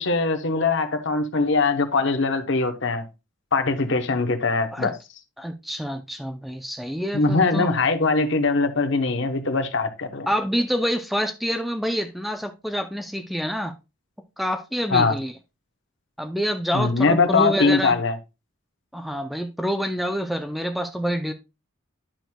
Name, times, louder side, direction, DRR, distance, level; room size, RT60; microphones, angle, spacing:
voice 1, 0.0-3.0 3.5-4.9 7.1-10.3 14.9-15.1 16.7-18.1, left 3 dB, 55° left, 0.9 m, -22 dB
voice 2, 5.4-7.7 10.3-13.7 14.4-15.3 16.2-18.0 18.9-21.3, equal, ahead, 0.4 m, -27 dB
10.0 x 6.1 x 2.2 m
head